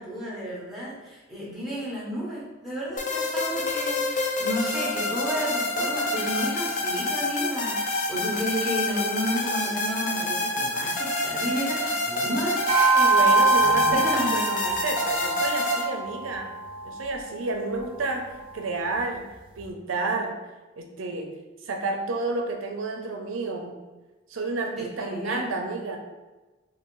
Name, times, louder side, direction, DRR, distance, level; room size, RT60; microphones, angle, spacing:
voice 1, 0.0-12.6 12.9-13.1 13.6-14.4 24.8-25.5, equal, ahead, -8 dB, 0.8 m, -32 dB
sound 1, 3.0-15.8, left 2 dB, 40° left, 0.4 m, -28 dB
sound 2, 12.7-17.3, right 3 dB, 25° right, 0.4 m, -23 dB
voice 2, 12.9-16.5 16.8-19.3 19.6-20.4 20.7-21.3 21.6-23.8 24.3-26.0, right 3 dB, 85° right, 3 dB, 0.5 m, -30 dB
2.6 x 2.4 x 3.0 m, 1.2 s
head